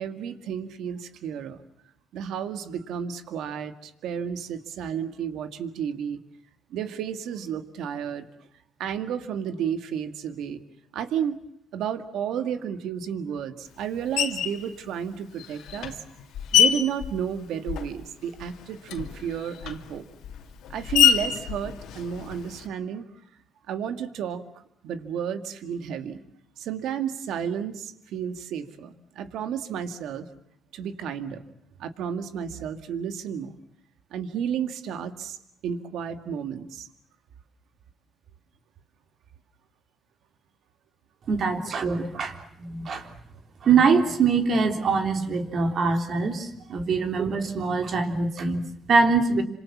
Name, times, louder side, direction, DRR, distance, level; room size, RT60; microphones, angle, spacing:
voice 1, 0.0-1.6 2.1-6.2 6.7-8.3 8.8-10.6 10.9-11.4 11.7-16.0 16.5-20.0 20.7-23.1 23.7-26.2 26.6-30.3 30.7-31.4 31.8-33.6 34.1-35.4 35.6-36.9 46.7-46.9, right 8 dB, 85° right, 9 dB, 2.0 m, -32 dB
Screech, 14.2-14.6 15.4-18.1 18.4-22.7, left 9 dB, 85° left, 2.6 m, -26 dB
voice 2, 41.3-42.3 42.6-43.1 43.6-49.4, right 4 dB, 60° right, 5 dB, 3.5 m, -23 dB
28.0 x 26.5 x 7.4 m, 0.75 s
cardioid pair, 90°, 0 cm